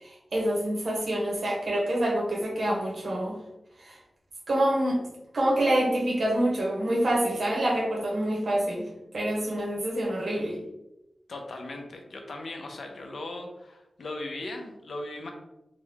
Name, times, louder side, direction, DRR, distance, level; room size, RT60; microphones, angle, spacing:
voice 1, 0.0-3.4 3.8-4.0 4.5-5.0 5.3-8.9 9.1-10.6, right 1 dB, 60° right, -3 dB, 0.8 m, -26 dB
voice 2, 11.3-15.3, left 2 dB, 70° left, 3 dB, 0.6 m, -38 dB
3.7 x 2.1 x 3.4 m, 0.92 s
wide cardioid pair, 140°, 0 cm